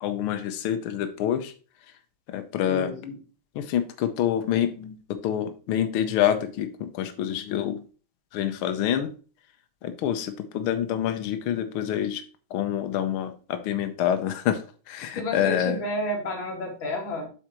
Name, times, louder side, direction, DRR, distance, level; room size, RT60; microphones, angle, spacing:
voice 1, 0.0-1.5 2.3-2.9 3.5-7.8 8.3-9.1 9.8-12.2 12.5-14.6 14.9-15.8, left 10 dB, 90° left, 8 dB, 1.1 m, -27 dB
voice 2, 2.7-3.2 15.2-17.3, left 1 dB, 40° left, 0 dB, 2.7 m, -31 dB
8.0 x 6.3 x 3.0 m, 0.37 s
omnidirectional pair, 3.5 m